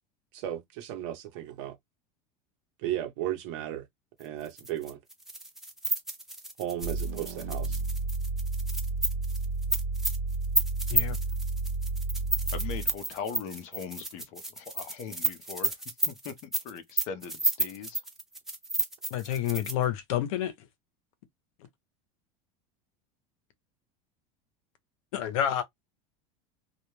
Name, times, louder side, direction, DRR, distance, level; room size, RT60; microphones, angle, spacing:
voice 1, 0.3-1.8 2.8-3.8 4.2-5.0 6.6-7.8, right 12 dB, 60° right, 0.9 m, -35 dB
sound 1, 4.5-19.8, right 1 dB, ahead, 0.4 m, -31 dB
sound 2, 6.8-13.0, right 3 dB, 90° right, 0.7 m, -31 dB
voice 2, 12.5-15.7 16.1-18.0, left 7 dB, 40° left, 0.6 m, -40 dB
voice 3, 19.1-20.5 25.1-25.6, left 10 dB, 80° left, 0.7 m, -29 dB
2.3 x 2.2 x 3.0 m
supercardioid pair, 165°, 18 cm